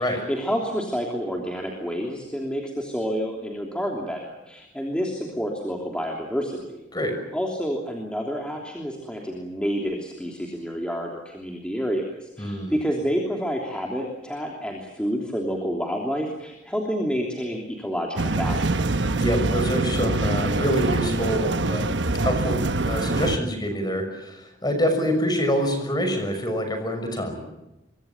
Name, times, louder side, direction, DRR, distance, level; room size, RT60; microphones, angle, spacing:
voice 1, 0.0-6.8 7.3-19.0, equal, 5° left, 0 dB, 3.2 m, -29 dB
voice 2, 12.4-12.7 19.1-21.9 22.2-22.6 22.9-27.5, equal, 20° left, 6 dB, 6.1 m, -26 dB
sound 1, 18.2-23.4, right 2 dB, 70° right, 1.2 m, -24 dB
26.0 x 23.0 x 7.2 m, 0.94 s
head